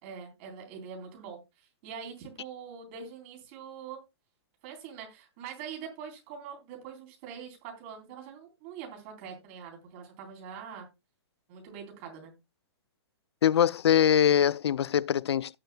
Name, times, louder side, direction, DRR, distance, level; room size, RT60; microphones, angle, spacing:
voice 1, 0.0-4.0 4.6-10.9 11.5-12.3, right 7 dB, 25° right, 3.7 m, -44 dB
voice 2, 13.4-15.6, left 9 dB, 70° left, 0.5 m, -23 dB
17.0 x 5.8 x 2.2 m
hypercardioid pair, 175°, 14 cm